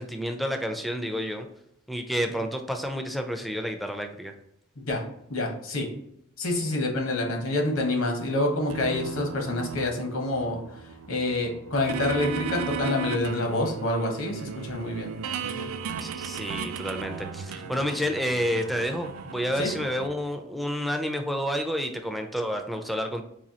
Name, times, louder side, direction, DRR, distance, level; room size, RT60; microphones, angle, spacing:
voice 1, 0.0-1.5 1.9-4.3 16.0-23.2, equal, ahead, 5 dB, 0.3 m, -30 dB
voice 2, 5.3-5.9 6.4-10.8 11.1-15.1 15.4-15.7 17.6-17.8 19.6-19.7, left 2 dB, 75° left, 2 dB, 0.9 m, -27 dB
sound 1, 8.7-20.1, right 6 dB, 90° right, 0.3 m, -36 dB
4.1 x 2.7 x 2.8 m, 0.76 s
head